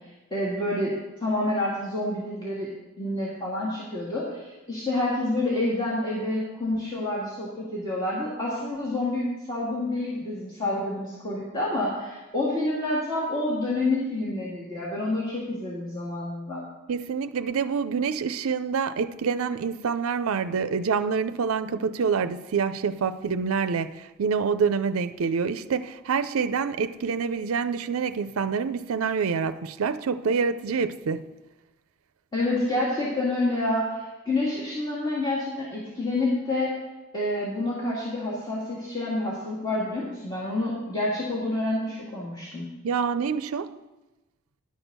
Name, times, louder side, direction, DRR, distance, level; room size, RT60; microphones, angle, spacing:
voice 1, 0.3-0.9 1.2-2.7 3.0-16.6 32.3-36.7 37.1-42.7, left 2 dB, 20° left, 1.9 m, -28 dB
voice 2, 16.9-31.2 42.8-43.7, right 5 dB, 80° right, 0.5 m, -26 dB
10.5 x 6.2 x 6.6 m
head